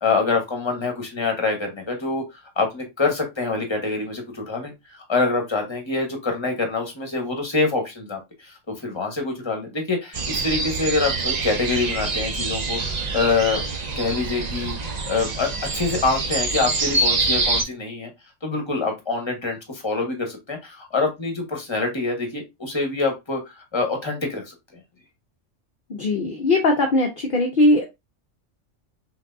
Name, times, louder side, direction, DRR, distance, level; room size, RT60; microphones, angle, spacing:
voice 1, 0.0-2.2 2.6-4.7 5.1-12.8 13.1-13.6 14.0-14.7 15.1-18.1 18.4-24.5, left 3 dB, 25° left, 3 dB, 1.2 m, -25 dB
sound 1, 10.1-17.6, right 3 dB, 40° right, 0.7 m, -25 dB
voice 2, 25.9-27.9, left 2 dB, 50° left, 2 dB, 0.8 m, -20 dB
5.6 x 2.6 x 2.5 m, 0.22 s
omnidirectional pair, 1.3 m